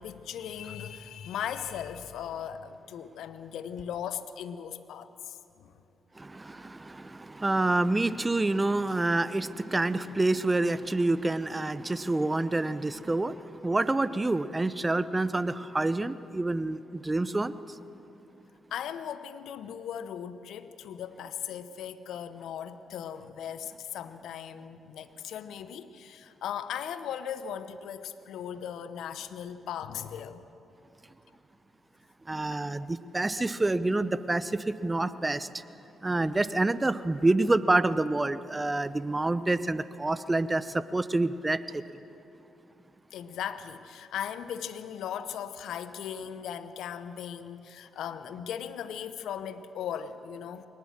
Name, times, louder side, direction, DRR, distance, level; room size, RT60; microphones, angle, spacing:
voice 1, 0.0-5.8 18.7-30.5 43.1-50.7, left 9 dB, 75° left, 12 dB, 0.8 m, -38 dB
voice 2, 6.2-17.5 32.3-35.5 36.0-41.8, right 2 dB, 25° right, 15 dB, 0.9 m, -27 dB
22.0 x 19.0 x 7.4 m, 2.9 s
hypercardioid pair, 45°, 0 cm